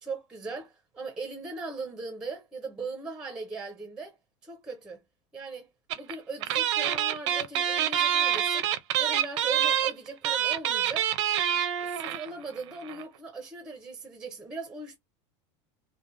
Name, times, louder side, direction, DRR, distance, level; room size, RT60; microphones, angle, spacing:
voice 1, 0.0-4.2 4.4-5.0 5.3-5.7 5.9-8.7 9.0-11.1 11.7-15.0, right 3 dB, 5° right, 0.5 m, -39 dB
sound 1, 5.9-6.1 6.4-12.3 12.6-12.7 12.8-13.0, right 10 dB, 80° right, 0.6 m, -26 dB
3.1 x 2.0 x 2.4 m
supercardioid pair, 175°, 15 cm